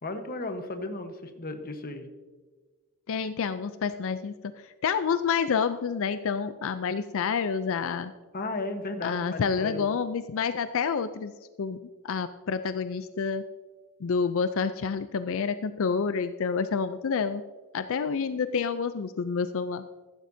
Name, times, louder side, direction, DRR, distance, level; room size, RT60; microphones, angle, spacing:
voice 1, 0.0-2.1 8.3-10.0, left 2 dB, 45° left, 7 dB, 1.2 m, -35 dB
voice 2, 3.1-8.1 9.0-11.3 11.6-11.8 12.0-13.4 14.0-17.4 17.7-19.8, left 6 dB, 65° left, 12 dB, 0.4 m, -28 dB
15.0 x 11.5 x 2.7 m, 1.4 s
head